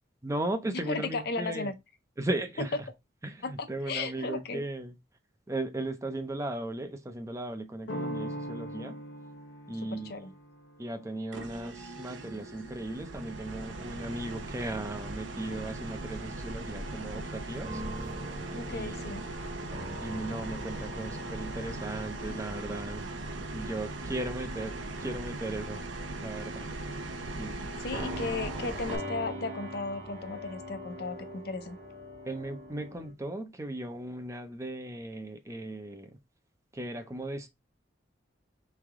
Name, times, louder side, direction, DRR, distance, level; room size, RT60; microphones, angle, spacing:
voice 1, 0.2-1.7 2.2-2.9 3.2-5.0 5.5-9.0 9.7-10.3 10.8-18.1 18.7-19.0 20.0-23.1 23.5-25.9 26.2-26.7 27.4-27.6 32.3-36.2 36.7-37.5, right 1 dB, 15° right, 0.5 m, -37 dB
voice 2, 0.9-1.7 3.4-4.6 9.8-10.3 18.5-19.2 27.8-31.8, left 3 dB, 55° left, 0.6 m, -35 dB
sound 1, 7.9-13.4, equal, 85° left, 0.8 m, -42 dB
sound 2, 11.3-29.0, right 2 dB, 90° right, 0.7 m, -39 dB
sound 3, 17.6-23.7 24.1-24.4 25.3-26.1 27.9-33.1, equal, 35° right, 1.3 m, -42 dB
3.5 x 3.3 x 3.5 m
head